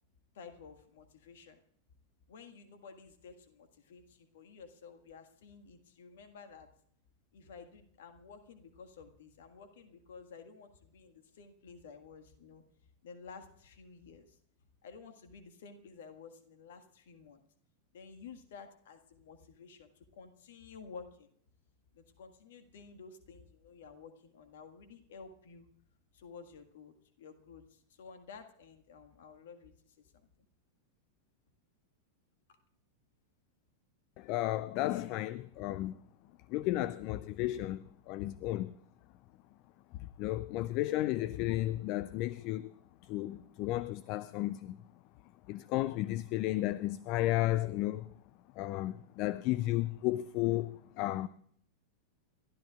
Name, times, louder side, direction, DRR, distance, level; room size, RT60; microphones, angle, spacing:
voice 1, 0.3-1.6 2.3-6.7 7.3-12.6 13.0-14.4 14.8-17.4 17.9-21.3 21.9-25.7 26.1-30.1, left 5 dB, 60° left, 1.8 m, -52 dB
voice 2, 34.2-36.0 36.5-38.7 40.0-42.7 43.0-44.8 45.5-48.1 48.6-51.3, left 16 dB, 45° left, 0.5 m, -33 dB
29.5 x 13.0 x 2.5 m
figure-of-eight pair, 90°, 0 cm